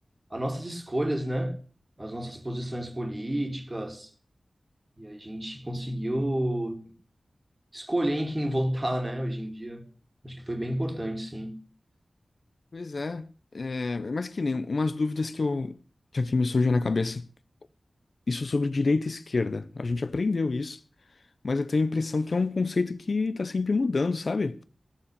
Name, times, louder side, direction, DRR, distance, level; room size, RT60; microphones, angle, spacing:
voice 1, 0.3-1.6 2.0-4.1 5.0-7.0 7.7-9.9 10.2-11.6, right 1 dB, 25° right, 2.3 m, -30 dB
voice 2, 12.7-13.3 13.5-15.8 16.1-17.3 18.3-20.8 21.4-24.6, left 3 dB, 65° left, 0.7 m, -27 dB
16.0 x 7.2 x 8.2 m
wide cardioid pair, 70°, 0 cm